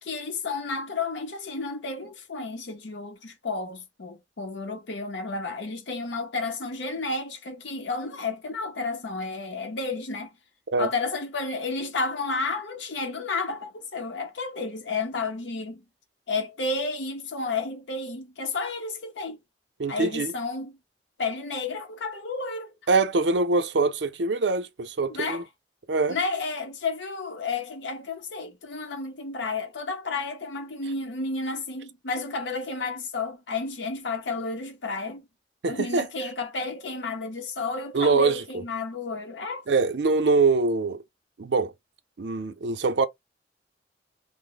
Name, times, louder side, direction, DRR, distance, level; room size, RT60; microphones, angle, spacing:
voice 1, 0.0-10.3 10.8-15.8 16.3-19.4 19.9-20.8 21.2-22.7 25.1-25.4 26.1-35.3 35.7-39.6, left 3 dB, 85° left, 0.7 m, -31 dB
voice 2, 19.8-20.3 22.9-25.4 25.9-26.2 35.6-36.0 37.9-38.6 39.7-41.0 41.4-41.7 42.2-43.1, right 3 dB, 80° right, 0.6 m, -23 dB
3.0 x 2.1 x 3.8 m
head